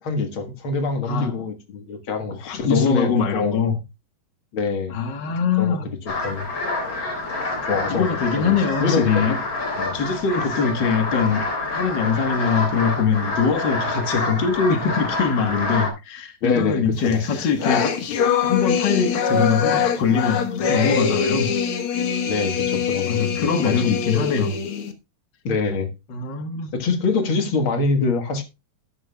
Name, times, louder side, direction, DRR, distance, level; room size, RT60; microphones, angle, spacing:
voice 1, 0.0-3.6 4.5-4.9 5.6-6.0 6.2-6.5 7.6-8.1 8.4-9.3 9.8-10.0 16.4-17.3 22.3-23.2 23.6-23.9 25.4-25.9 26.7-28.4, left 4 dB, 50° left, 1.7 m, -24 dB
voice 2, 1.0-1.4 2.3-3.7 4.9-5.9 7.9-9.4 9.9-18.0 18.4-21.5 23.0-24.6 26.1-26.7, left 6 dB, 85° left, 0.9 m, -22 dB
sound 1, 6.1-15.9, left 3 dB, 35° left, 4.2 m, -27 dB
sound 2, 17.0-24.9, left 6 dB, 65° left, 1.3 m, -23 dB
12.5 x 11.5 x 2.3 m
omnidirectional pair, 4.3 m